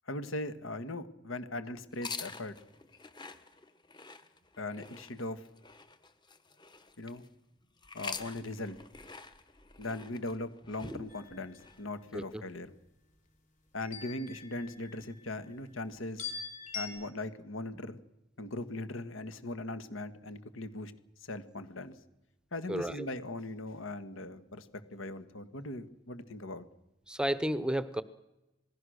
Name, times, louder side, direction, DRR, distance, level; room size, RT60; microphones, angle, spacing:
voice 1, 0.1-2.5 4.6-5.4 7.0-7.2 7.9-8.8 9.8-12.7 13.7-16.3 16.7-18.0 18.4-20.9 21.3-21.9 22.5-26.7, left 2 dB, 90° left, 12 dB, 1.7 m, -39 dB
sound 1, 1.9-7.3 7.8-11.8, left 4 dB, 25° left, 1.3 m, -47 dB
sound 2, 11.1-11.7 13.8-15.2 16.2-16.9, left 5 dB, 40° left, 4.3 m, -42 dB
voice 2, 22.7-23.1 27.1-28.0, right 1 dB, 5° right, 15 dB, 0.7 m, -32 dB
27.0 x 19.0 x 6.5 m, 0.95 s
head